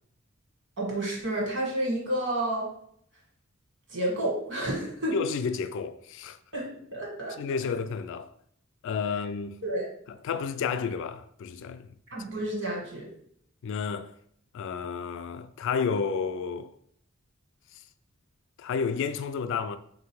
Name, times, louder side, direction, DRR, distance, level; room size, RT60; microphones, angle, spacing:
voice 1, 0.8-2.7 3.9-5.1 6.5-7.4 9.6-9.9 12.1-13.1, right 1 dB, 60° right, 1.6 m, -30 dB
voice 2, 5.1-6.4 7.4-8.3 8.8-9.6 10.1-11.9 13.6-14.1 14.5-16.7 17.7-17.8 18.6-19.8, left 6 dB, 60° left, 0.3 m, -31 dB
3.4 x 2.7 x 4.5 m
head